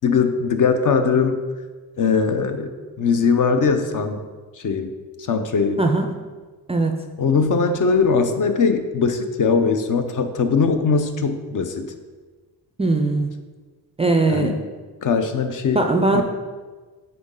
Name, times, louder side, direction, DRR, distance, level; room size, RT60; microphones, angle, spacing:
voice 1, 0.0-1.4 2.0-2.7 3.0-4.2 4.6-4.9 5.3-5.8 7.2-11.9 14.3-14.6 15.0-15.8 16.1-16.2, left 5 dB, 50° left, 7 dB, 0.6 m, -20 dB
voice 2, 12.8-13.3 14.0-14.6 15.7-16.2, right 2 dB, 15° right, 4 dB, 0.3 m, -19 dB
9.4 x 4.0 x 3.7 m, 1.4 s
cardioid pair, 135°, 41 cm